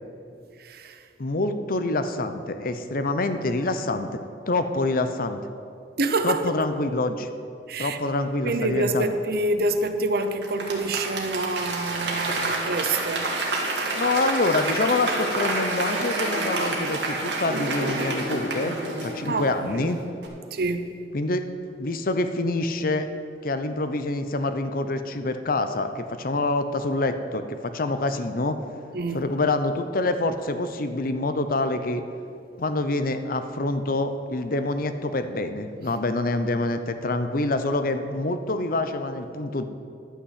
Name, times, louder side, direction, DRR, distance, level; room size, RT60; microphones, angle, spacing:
voice 1, 0.6-1.1 6.0-6.5 7.7-8.0 8.4-13.4 13.8-13.9 19.3-19.9 20.5-20.9 28.9-29.3, right 2 dB, 60° right, 9 dB, 0.7 m, -27 dB
voice 2, 1.2-4.1 4.5-5.4 6.2-7.3 7.8-9.1 13.9-20.0 21.1-21.5 21.8-23.1 23.4-28.6 29.1-32.0 32.6-39.6, left 2 dB, 55° left, 9 dB, 0.7 m, -26 dB
Applause / Crowd, 10.4-19.8 20.2-20.3, right 2 dB, 85° right, 1.8 m, -28 dB
11.0 x 5.9 x 8.1 m, 2.4 s
head